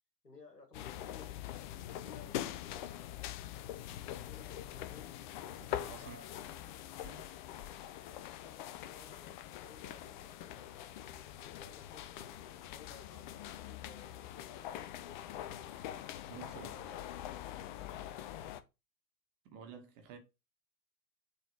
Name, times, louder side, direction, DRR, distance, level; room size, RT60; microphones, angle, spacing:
voice 1, 0.2-1.3 1.9-5.1 5.9-6.8 8.4-15.8 16.5-17.1, left 3 dB, 85° left, 2.4 m, -58 dB
sound 1, 0.7-18.6, left 12 dB, 30° left, 0.6 m, -44 dB
voice 2, 5.6-6.2 7.0-7.3 16.3-16.7 18.0-18.1 19.4-20.2, right 7 dB, 35° right, 2.0 m, -51 dB
6.7 x 4.1 x 4.5 m
figure-of-eight pair, 100°, 47 cm